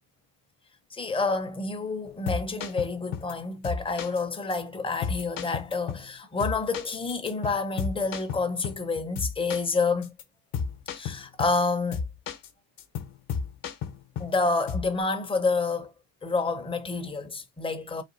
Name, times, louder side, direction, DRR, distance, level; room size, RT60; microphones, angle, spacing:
voice 1, 0.9-10.1 10.9-12.0 14.2-15.9 16.2-18.0, left 3 dB, 10° left, 0.8 m, -28 dB
sound 1, 2.1-3.3 3.6-4.2 4.5-4.6 5.0-6.1 6.4-8.9 9.2-9.7 10.0-10.2 10.5-11.6 11.9-12.5 12.8-14.4 14.7-15.0, left 6 dB, 45° left, 1.0 m, -33 dB
4.1 x 2.6 x 3.9 m
supercardioid pair, 110°, 49 cm